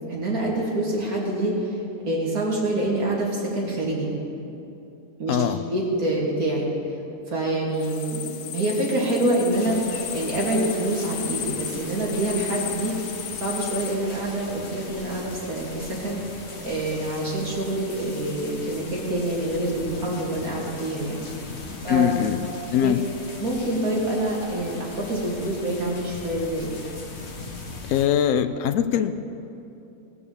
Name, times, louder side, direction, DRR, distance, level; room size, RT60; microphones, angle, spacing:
voice 1, 0.1-1.8 2.0-4.1 5.2-5.4 5.7-6.7 7.3-12.9 13.4-16.2 16.6-21.2 21.8-22.1 22.8-23.0 23.4-26.7, right 1 dB, 70° right, -4 dB, 3.1 m, -26 dB
voice 2, 5.3-5.6 21.9-22.4 22.7-23.0 27.9-29.1, left 10 dB, 65° left, 10 dB, 1.0 m, -22 dB
sound 1, 7.7-13.9, left 10 dB, 90° left, 1.2 m, -35 dB
sound 2, 9.5-28.1, left 3 dB, 50° left, 1.4 m, -39 dB
18.0 x 6.9 x 7.0 m, 2.8 s
omnidirectional pair, 1.6 m